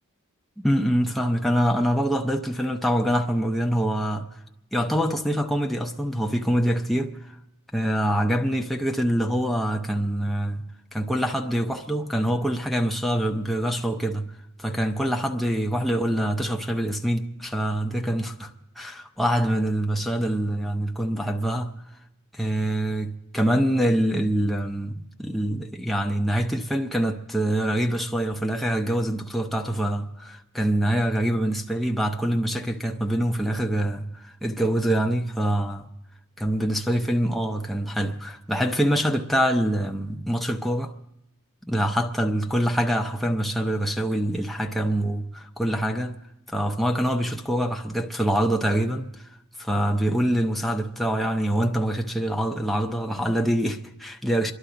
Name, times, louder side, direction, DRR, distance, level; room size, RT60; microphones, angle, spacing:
voice 1, 0.6-4.3 4.7-7.2 7.7-10.6 10.9-14.3 14.6-21.8 22.3-35.9 36.4-40.9 41.7-46.2 46.5-49.2 49.6-54.5, equal, ahead, 0.7 m, -25 dB
28.0 x 11.5 x 3.9 m
head